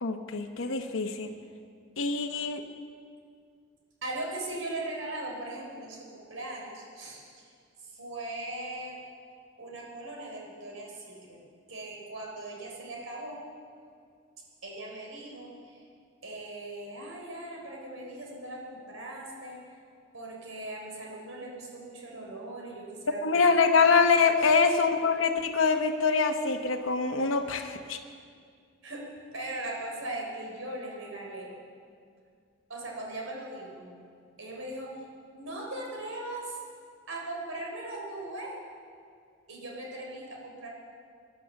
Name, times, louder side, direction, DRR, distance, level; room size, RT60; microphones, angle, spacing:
voice 1, 0.0-1.3 2.0-2.6 23.1-28.0, left 4 dB, 75° left, 4 dB, 0.9 m, -25 dB
voice 2, 4.0-7.4 7.8-9.0 9.6-11.4 11.7-13.4 14.6-15.8 16.2-19.6 20.1-23.7 24.4-24.5 28.8-31.5 32.7-33.9 34.4-35.0 35.3-36.6 37.1-38.6 39.5-40.7, right 2 dB, 85° right, -1 dB, 3.6 m, -39 dB
18.5 x 11.0 x 7.0 m, 2.2 s
head